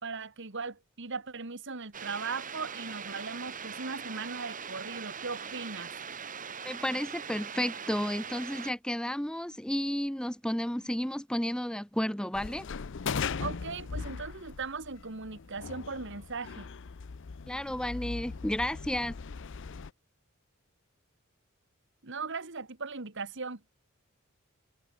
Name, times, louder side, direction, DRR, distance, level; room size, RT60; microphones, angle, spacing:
voice 1, 0.0-5.9 13.4-16.7 22.0-23.6, right 4 dB, 60° right, 1.9 m, -38 dB
sound 1, 1.9-8.7, right 6 dB, 40° right, 3.0 m, -41 dB
voice 2, 6.6-12.7 17.5-19.2, equal, 5° left, 0.8 m, -32 dB
sound 2, 12.3-19.9, left 5 dB, 60° left, 0.6 m, -39 dB
head